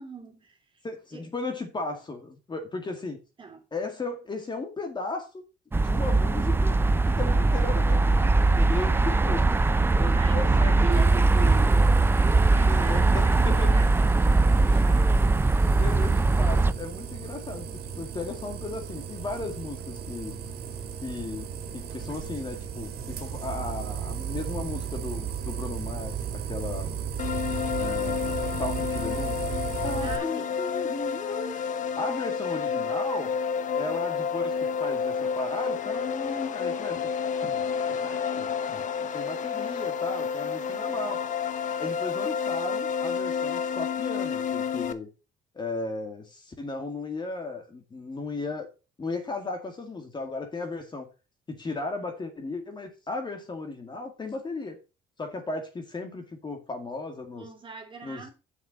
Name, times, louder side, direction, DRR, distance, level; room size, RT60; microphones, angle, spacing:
voice 1, 0.0-0.8 1.1-1.3 3.4-3.6 10.1-15.5 30.0-30.5 40.7-41.0 57.4-58.3, right 5 dB, 30° right, 2.8 m, -40 dB
voice 2, 0.8-3.2 3.7-5.4 5.7-6.7 7.2-9.4 10.0-11.1 12.7-13.7 15.8-17.7 18.0-20.4 21.0-27.0 27.8-29.4 29.8-31.6 32.0-33.3 33.8-37.1 37.4-37.6 38.0-41.2 41.8-45.1 45.5-48.7 49.0-51.1 51.5-54.8 55.2-57.5 58.0-58.3, left 3 dB, 25° left, 2.1 m, -35 dB
sound 1, 5.7-16.7, right 3 dB, 15° right, 0.5 m, -21 dB
sound 2, 10.9-30.2, right 7 dB, 65° right, 2.3 m, -36 dB
sound 3, 27.2-44.9, left 6 dB, 50° left, 1.0 m, -30 dB
7.1 x 6.7 x 5.5 m
cardioid pair, 110°, 17 cm